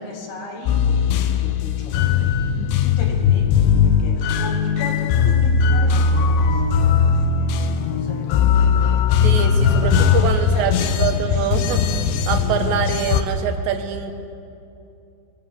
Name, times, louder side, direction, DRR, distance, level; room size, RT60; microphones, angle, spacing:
voice 1, 0.0-10.9 11.1-11.5, left 3 dB, 60° left, 3 dB, 4.0 m, -37 dB
sound 1, 0.7-13.2, left 6 dB, 85° left, 3.6 m, -19 dB
voice 2, 9.2-11.8 12.3-14.1, right 7 dB, 75° right, 7 dB, 3.3 m, -24 dB
25.5 x 22.5 x 7.1 m, 2.6 s
omnidirectional pair, 5.3 m